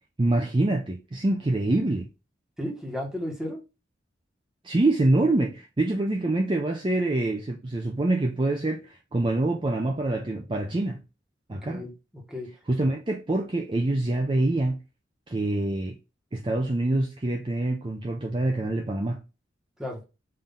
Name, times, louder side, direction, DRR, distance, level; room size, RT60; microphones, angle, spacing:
voice 1, 0.2-2.1 4.6-11.0 11.5-11.8 12.7-14.8 15.3-16.0 16.3-19.2, right 2 dB, 25° right, 0.5 m, -25 dB
voice 2, 2.6-3.6 11.6-12.5 19.8-20.0, left 1 dB, 5° right, 1.2 m, -34 dB
5.6 x 2.7 x 3.5 m
head